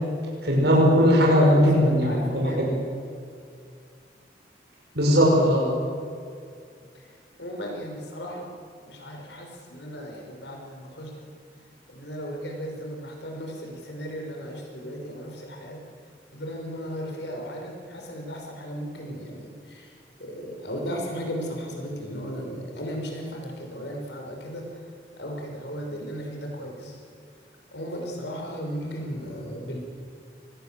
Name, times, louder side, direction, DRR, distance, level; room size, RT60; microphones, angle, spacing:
voice 1, 0.4-2.1 2.3-2.7 4.9-5.7, equal, 70° right, -2 dB, 6.5 m, -18 dB
voice 2, 1.4-2.8 6.9-7.1 7.4-8.5 8.8-11.3 11.9-15.8 16.3-24.8 25.2-27.0 27.7-29.8, equal, 80° left, 1 dB, 6.0 m, -35 dB
25.5 x 20.0 x 7.8 m, 2.3 s
head